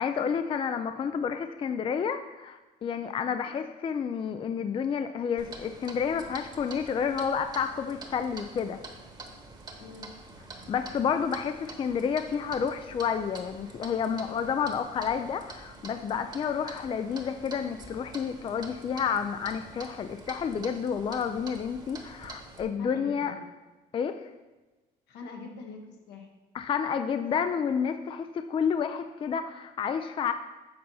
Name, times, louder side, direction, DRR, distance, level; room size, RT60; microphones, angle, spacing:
voice 1, 0.0-8.8 10.7-23.3 23.9-24.3 26.5-30.3, left 7 dB, 30° left, 9 dB, 0.4 m, -30 dB
Clock, 5.4-22.6, right 3 dB, 25° right, 1.2 m, -46 dB
voice 2, 9.8-10.1 22.8-23.4 25.1-26.3, left 4 dB, 85° left, 2 dB, 1.4 m, -44 dB
7.7 x 4.2 x 5.5 m, 1.1 s
cardioid pair, 110°, 17 cm